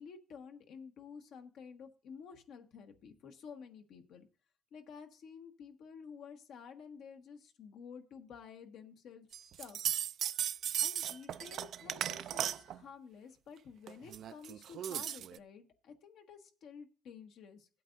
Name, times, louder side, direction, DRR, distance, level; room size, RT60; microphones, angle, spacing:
voice 1, 0.0-4.3 4.7-9.8 10.8-17.7, left 6 dB, 80° left, 5 dB, 1.3 m, -52 dB
sound 1, 9.3-12.8 13.9-15.4, right 10 dB, 70° right, 0.4 m, -36 dB
16.0 x 8.5 x 2.6 m, 0.35 s
cardioid pair, 90°, 0 cm